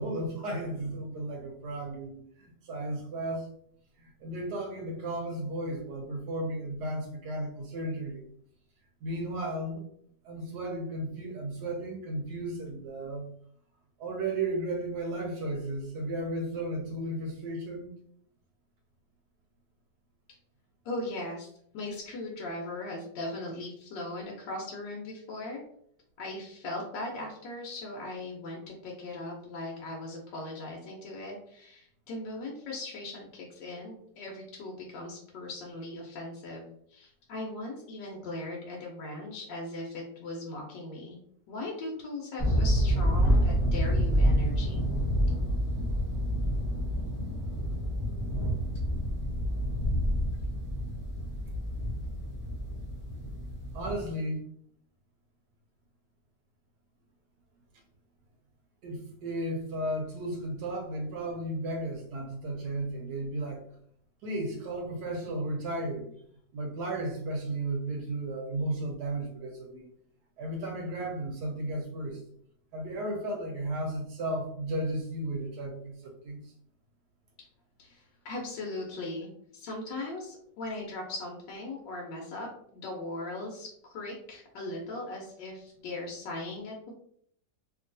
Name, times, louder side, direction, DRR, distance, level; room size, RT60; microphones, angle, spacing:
voice 1, 0.0-3.5 4.0-8.3 9.0-9.8 10.2-13.3 14.0-17.9 53.7-54.4 58.8-63.7 64.2-66.1 66.5-69.9 70.4-72.2 72.7-76.4, right 1 dB, 70° right, 2 dB, 1.1 m, -34 dB
voice 2, 20.8-25.6 26.2-41.2 41.5-44.9 77.8-86.9, left 2 dB, 75° left, -2 dB, 1.3 m, -39 dB
sound 1, 42.4-54.1, equal, 25° left, 0.7 m, -28 dB
2.9 x 2.7 x 2.6 m, 0.66 s
omnidirectional pair, 1.9 m